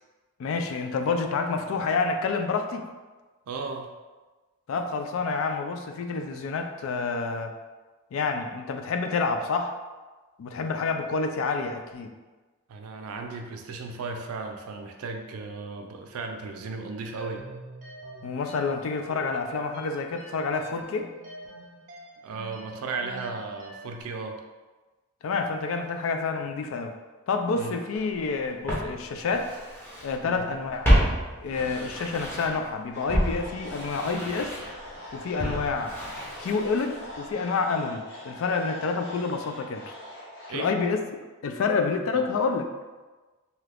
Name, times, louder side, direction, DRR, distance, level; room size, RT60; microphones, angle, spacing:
voice 1, 0.4-2.9 4.7-7.5 8.1-9.8 10.4-12.1 18.2-21.1 25.2-26.9 27.3-29.5 30.0-30.9 31.4-34.6 35.1-35.9 36.4-39.9 40.5-41.0 41.4-42.6, left 4 dB, 65° left, 5 dB, 0.3 m, -28 dB
voice 2, 3.5-3.9 12.7-17.4 22.2-24.4 27.5-27.8 30.2-30.5 35.4-35.7 40.5-40.7 42.1-42.2, right 4 dB, 80° right, 4 dB, 0.4 m, -35 dB
sound 1, 17.2-24.0, right 2 dB, 35° right, 0.6 m, -45 dB
Walk footsteps, 28.0-28.1 28.7-30.2 30.4-32.7 33.1-37.1 37.4-37.5, equal, 10° left, 0.6 m, -28 dB
sound 2, 32.9-40.5, left 1 dB, 50° left, 0.7 m, -43 dB
2.8 x 2.4 x 3.3 m, 1.3 s
head